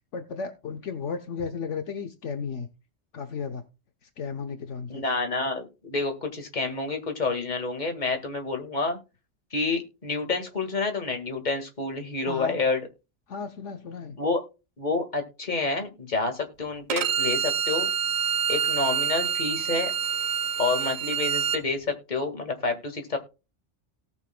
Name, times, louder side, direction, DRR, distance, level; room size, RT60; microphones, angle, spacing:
voice 1, 0.1-2.7 3.1-3.6 4.0-5.0 12.3-12.6 13.3-14.2, left 5 dB, 70° left, 7 dB, 1.2 m, -34 dB
voice 2, 4.9-9.0 9.5-12.9 14.2-14.4 14.8-17.9 18.5-19.9 20.6-23.2, left 3 dB, 35° left, 5 dB, 2.0 m, -28 dB
Bowed string instrument, 16.9-21.6, right 8 dB, 70° right, 0.3 m, -27 dB
18.0 x 6.8 x 2.2 m, 0.29 s
omnidirectional pair, 1.3 m